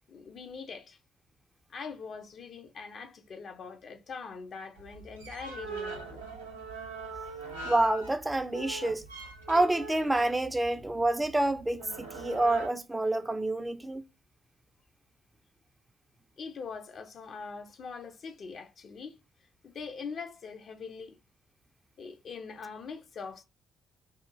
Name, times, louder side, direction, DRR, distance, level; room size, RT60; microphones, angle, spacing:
voice 1, 0.1-1.0 1.7-6.2 16.4-19.2 19.6-21.2 22.0-23.4, left 5 dB, 45° left, 0.5 m, -42 dB
sound 1, 4.8-12.7, right 3 dB, 80° right, 0.5 m, -42 dB
voice 2, 7.6-9.0 9.5-14.0, right 2 dB, 15° right, 0.3 m, -28 dB
2.8 x 2.3 x 2.2 m
figure-of-eight pair, 40°, 0 cm